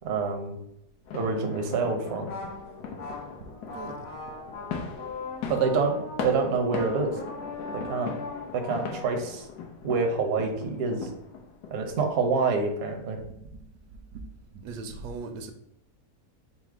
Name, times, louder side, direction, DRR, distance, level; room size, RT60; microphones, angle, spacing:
voice 1, 0.0-0.6 1.1-2.3 5.5-7.1 7.7-8.1 8.5-9.5 9.8-11.1 11.7-13.2, right 4 dB, 60° right, 4 dB, 0.7 m, -27 dB
sound 1, 1.1-11.9, left 5 dB, 85° left, 1.3 m, -39 dB
sound 2, 2.0-9.1, left 3 dB, 60° left, 0.7 m, -39 dB
voice 2, 3.7-4.1 13.2-13.6 13.9-14.2 14.5-15.5, right 4 dB, 85° right, 7 dB, 1.1 m, -40 dB
4.3 x 2.0 x 4.5 m, 0.78 s
omnidirectional pair, 1.7 m